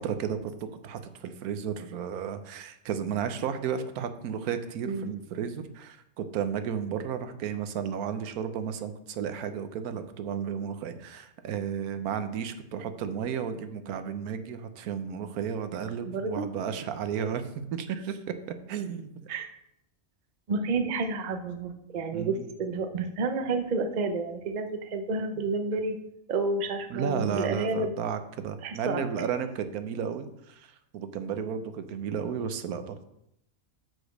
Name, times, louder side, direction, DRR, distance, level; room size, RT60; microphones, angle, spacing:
voice 1, 0.0-18.3 18.7-19.1 22.1-22.5 25.3-25.4 26.9-33.0, right 7 dB, 85° right, 9 dB, 1.2 m, -33 dB
voice 2, 16.0-16.5 19.3-19.5 20.5-26.0 26.3-27.9 28.6-29.0, right 3 dB, 45° right, 7 dB, 0.6 m, -30 dB
6.1 x 4.9 x 6.4 m, 0.78 s
omnidirectional pair, 1.5 m